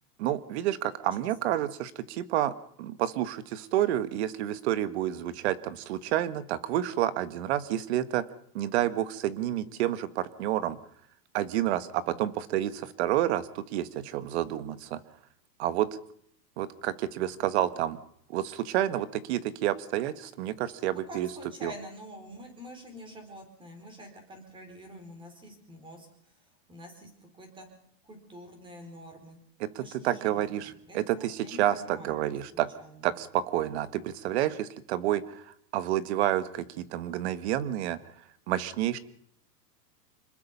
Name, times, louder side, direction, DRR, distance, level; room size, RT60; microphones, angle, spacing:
voice 1, 0.2-8.2 8.5-10.8 11.3-15.0 15.6-15.9 16.6-18.0 18.3-21.3 21.6-21.7 29.6-32.7 33.0-35.4 35.7-38.0 38.5-39.0, right 12 dB, 40° right, 13 dB, 1.5 m, -29 dB
voice 2, 1.2-1.5 20.7-26.4 26.7-27.7 28.0-29.4 29.8-33.1, equal, 10° right, 5 dB, 4.6 m, -47 dB
26.5 x 20.5 x 5.5 m, 0.66 s
supercardioid pair, 165°, 49 cm